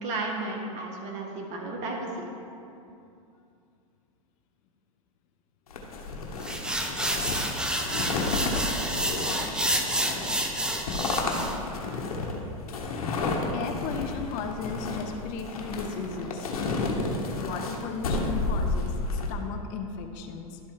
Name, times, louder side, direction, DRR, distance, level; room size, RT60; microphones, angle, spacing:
voice 1, 0.0-2.2, right 2 dB, 40° right, 0 dB, 1.6 m, -33 dB
sound 1, 5.7-19.3, left 3 dB, 85° left, 1.3 m, -31 dB
sound 2, 6.4-11.6, right 1 dB, 5° right, 0.6 m, -29 dB
voice 2, 13.5-16.5 17.4-20.6, left 5 dB, 45° left, 5 dB, 0.7 m, -36 dB
12.0 x 4.4 x 4.6 m, 2.6 s
hypercardioid pair, 125°, 18 cm